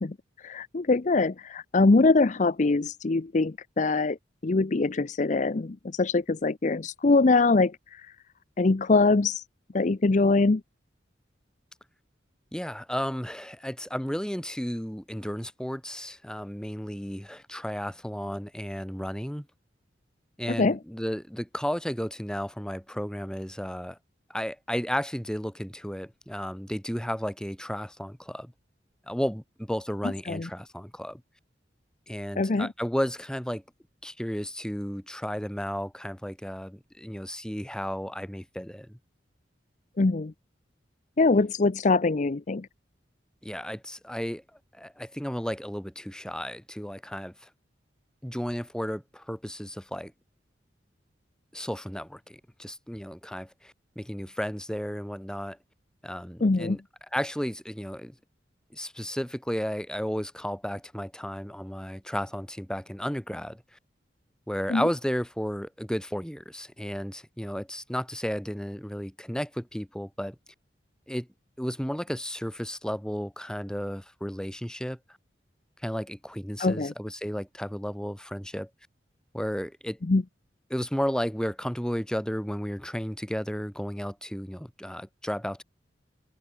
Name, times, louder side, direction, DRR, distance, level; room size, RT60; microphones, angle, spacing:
voice 1, 0.4-4.2 4.4-8.1 8.6-9.4 9.7-10.6 20.5-20.8 30.3-30.5 32.4-32.7 40.0-40.3 41.2-42.7 56.4-56.8 64.7-64.9 76.6-76.9 80.1-80.2, left 3 dB, 45° left, 0.6 m, -23 dB
voice 2, 12.5-19.5 20.4-24.0 24.3-28.5 29.1-31.2 32.1-33.6 34.0-39.0 43.4-44.4 44.7-47.5 48.2-50.1 51.5-55.6 56.0-56.8 57.1-58.1 58.7-63.6 64.5-70.4 71.1-71.3 71.6-75.0 75.8-78.7 79.3-80.0 80.7-85.6, equal, 5° left, 2.2 m, -33 dB
head